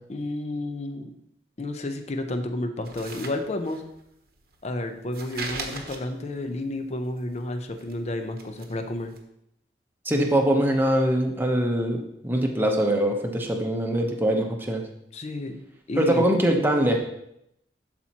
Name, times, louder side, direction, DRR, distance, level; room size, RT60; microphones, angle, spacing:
voice 1, 0.1-1.1 1.6-3.8 4.6-9.1 15.1-15.6 15.9-16.3, left 1 dB, 40° left, 6 dB, 0.6 m, -31 dB
sound 1, 2.8-4.0 4.3-6.4 6.8-8.1 8.4-8.8 9.1-9.2, right 4 dB, 60° right, 0.9 m, -38 dB
voice 2, 10.0-14.8 16.0-17.0, right 1 dB, 10° right, 2 dB, 0.8 m, -23 dB
11.5 x 4.3 x 2.9 m, 0.78 s
head